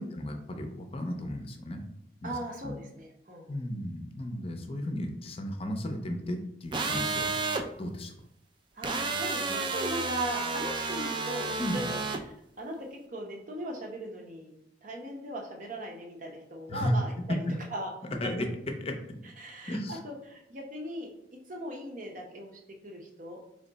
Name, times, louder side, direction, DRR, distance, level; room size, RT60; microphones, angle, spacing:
voice 1, 0.0-1.8 2.2-2.4 2.6-2.8 3.5-8.1 11.6-11.8 16.7-16.9 17.3-17.4 18.2-18.5 18.8-19.0 19.7-20.0, left 1 dB, 30° left, 5 dB, 0.6 m, -34 dB
voice 2, 2.2-3.6 8.7-11.8 12.2-14.5 14.8-17.4 17.7-17.9 19.2-21.1 21.5-23.4, right 1 dB, 45° right, 1 dB, 0.9 m, -39 dB
sound 1, 6.7-7.6 8.8-12.2, right 3 dB, 25° right, 0.3 m, -31 dB
3.6 x 3.2 x 3.9 m, 0.78 s
head